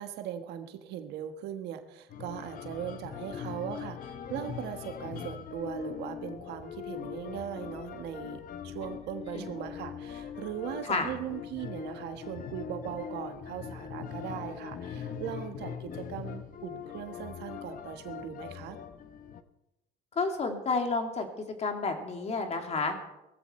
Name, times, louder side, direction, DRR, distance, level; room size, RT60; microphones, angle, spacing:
voice 1, 0.0-18.8, right 10 dB, 85° right, 7 dB, 1.4 m, -39 dB
sound 1, 2.1-19.4, left 7 dB, 55° left, 1.0 m, -41 dB
voice 2, 20.1-21.3 21.6-22.9, left 4 dB, 40° left, 4 dB, 2.5 m, -30 dB
17.5 x 14.5 x 4.4 m, 0.93 s
cardioid pair, 110°, 17 cm